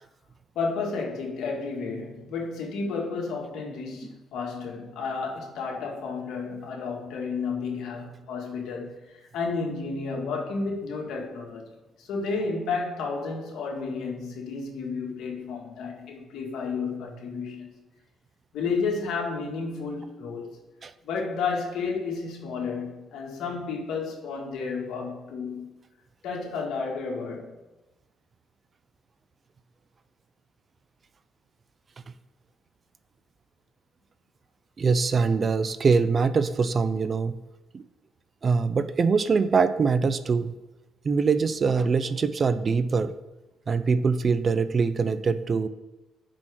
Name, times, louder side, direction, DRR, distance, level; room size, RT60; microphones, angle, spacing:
voice 1, 0.6-11.7 12.0-17.7 18.5-20.6 21.0-25.8 26.2-27.5, left 4 dB, 80° left, 2.0 m, -32 dB
voice 2, 34.8-37.4 37.7-37.8 38.4-40.5 41.0-43.1 43.7-45.7, right 5 dB, 40° right, 0.5 m, -23 dB
6.1 x 6.1 x 6.4 m
cardioid pair, 90°, 0 cm